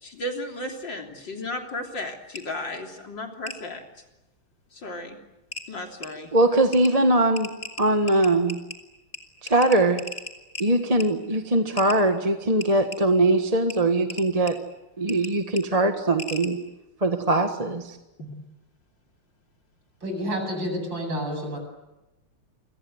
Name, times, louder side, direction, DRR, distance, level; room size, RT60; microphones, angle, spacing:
voice 1, 0.0-3.8 4.7-5.2 5.7-6.3 18.2-18.3, left 1 dB, 60° left, 3 dB, 4.0 m, -34 dB
sound 1, 2.4-2.5 3.5-3.6 4.9-5.0 5.5-5.7 6.0-6.1 6.7-6.9 7.4-8.8 9.1-9.2 9.5-10.7 11.0-11.1 11.8-12.0 12.6-13.0 13.7-13.8 14.1-14.5 15.1-15.3 15.6-15.7 16.2-16.5, left 2 dB, 25° left, 3.6 m, -36 dB
voice 2, 6.3-8.6 9.4-10.0 10.6-14.6 15.0-16.6 17.0-18.0, right 2 dB, 20° right, 6 dB, 1.4 m, -21 dB
voice 3, 20.0-21.6, equal, 60° right, 4 dB, 8.8 m, -29 dB
29.0 x 25.0 x 8.0 m, 1.0 s
omnidirectional pair, 2.3 m